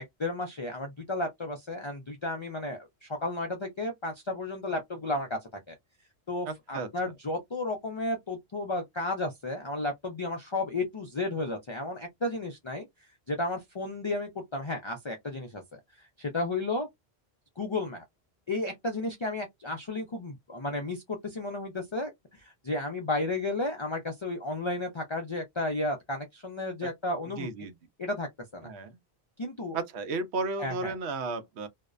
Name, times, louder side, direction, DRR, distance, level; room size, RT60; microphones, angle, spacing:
voice 1, 0.0-5.4 5.7-5.8 6.3-12.9 13.3-15.8 16.2-16.9 17.6-18.0 18.5-27.7 28.0-28.7 29.4-29.8 30.6-30.9, left 2 dB, 40° left, 0.4 m, -33 dB
voice 2, 6.5-6.9 27.4-27.8 28.6-29.0 29.7-31.7, right 3 dB, 85° right, 0.9 m, -33 dB
2.5 x 2.1 x 2.4 m
omnidirectional pair, 1.1 m